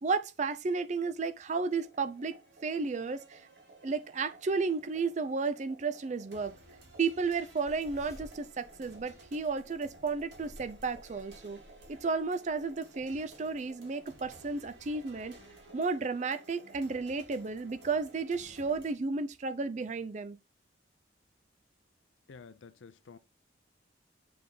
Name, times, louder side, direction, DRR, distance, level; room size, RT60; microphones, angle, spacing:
voice 1, 0.0-3.4 3.8-6.5 7.0-11.6 11.9-15.3 15.7-20.4, right 4 dB, 40° right, 0.4 m, -33 dB
sound 1, 1.7-18.9, right 2 dB, 70° right, 2.2 m, -55 dB
sound 2, 7.3-16.0, left 1 dB, 15° left, 2.0 m, -57 dB
voice 2, 22.3-23.2, left 5 dB, 85° left, 0.5 m, -51 dB
7.7 x 3.5 x 3.8 m
head